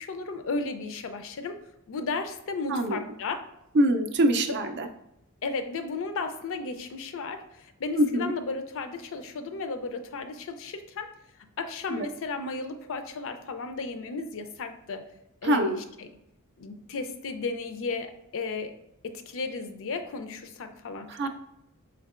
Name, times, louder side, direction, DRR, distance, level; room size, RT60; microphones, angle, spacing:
voice 1, 0.0-1.6 1.9-3.5 4.5-4.6 5.4-11.1 11.6-15.0 15.4-16.1 16.6-18.7 19.0-21.3, left 4 dB, 60° left, 8 dB, 0.4 m, -34 dB
voice 2, 2.7-3.0 3.7-4.9 8.0-8.3 11.9-12.1 15.4-15.8 21.1-21.3, right 1 dB, 50° right, 7 dB, 0.4 m, -24 dB
4.5 x 3.5 x 2.4 m, 0.83 s
head